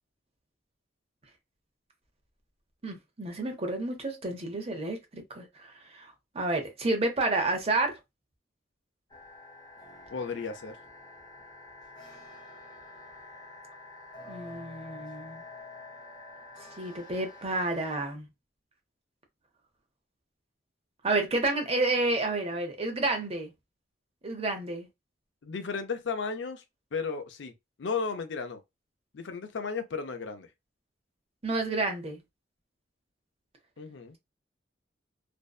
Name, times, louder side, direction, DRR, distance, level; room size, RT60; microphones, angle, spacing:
voice 1, 2.8-8.0 14.3-15.4 16.8-18.3 21.0-23.5 24.2-24.9 31.4-32.2, right 2 dB, 35° right, 0.7 m, -30 dB
sound 1, 9.1-17.9, left 2 dB, 25° left, 0.7 m, -48 dB
voice 2, 10.1-10.8 25.4-26.6 26.9-27.5 27.8-28.6 29.1-30.5 33.8-34.2, left 5 dB, 80° left, 0.5 m, -34 dB
2.6 x 2.1 x 2.3 m
head